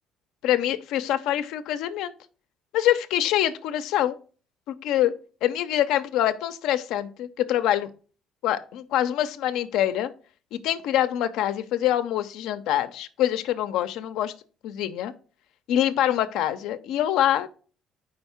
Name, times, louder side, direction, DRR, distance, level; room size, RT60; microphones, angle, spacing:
voice 1, 0.4-2.1 2.7-4.2 4.7-5.1 5.4-7.9 8.4-10.1 10.5-14.3 14.6-15.1 15.7-17.5, left 12 dB, 80° left, 10 dB, 0.5 m, -25 dB
5.0 x 3.5 x 5.5 m, 0.39 s
cardioid pair, 110°, 0 cm